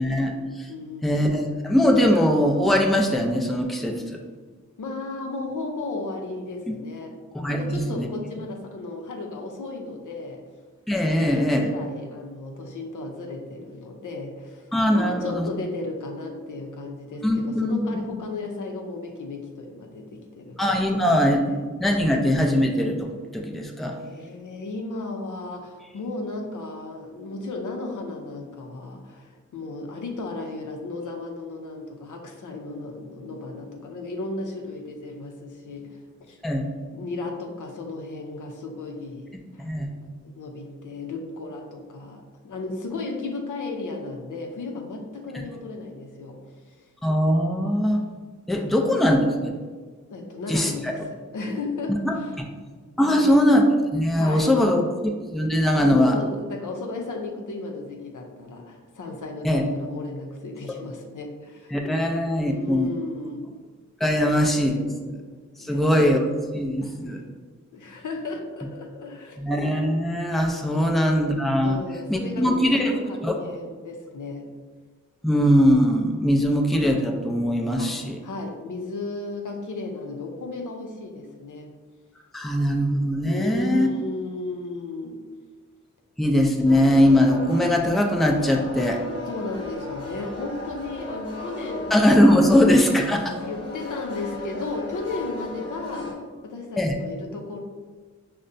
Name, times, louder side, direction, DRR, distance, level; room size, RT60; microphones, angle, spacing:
voice 1, 0.0-0.7 1.0-4.2 7.3-8.1 10.9-11.7 14.7-15.5 17.2-17.9 20.6-21.4 21.8-23.9 36.4-36.7 39.6-39.9 47.0-48.0 48.5-49.6 50.5-50.9 52.1-52.2 53.0-53.6 53.9-56.2 59.4-59.6 61.7-62.9 64.0-65.2 65.6-66.3 66.5-67.2 69.4-71.8 72.1-72.9 73.2-73.4 75.2-78.2 82.3-83.9 86.2-89.0 91.9-93.3 96.8-96.9, equal, ahead, 1 dB, 0.4 m, -21 dB
voice 2, 0.7-1.2 4.8-7.2 7.5-10.4 11.0-21.6 24.0-36.4 36.9-39.7 40.3-46.4 48.6-48.7 50.1-52.4 53.0-53.5 54.1-54.5 55.7-61.8 62.5-63.5 65.6-66.2 66.8-67.3 67.7-69.4 70.7-70.8 71.6-74.5 77.8-81.7 83.3-85.2 89.3-92.1 92.4-92.8 93.4-97.6, left 3 dB, 85° left, 2 dB, 0.6 m, -35 dB
sound 1, 86.6-96.1, left 2 dB, 50° left, 1.0 m, -36 dB
5.3 x 2.1 x 2.5 m, 1.5 s
wide cardioid pair, 65°, 30 cm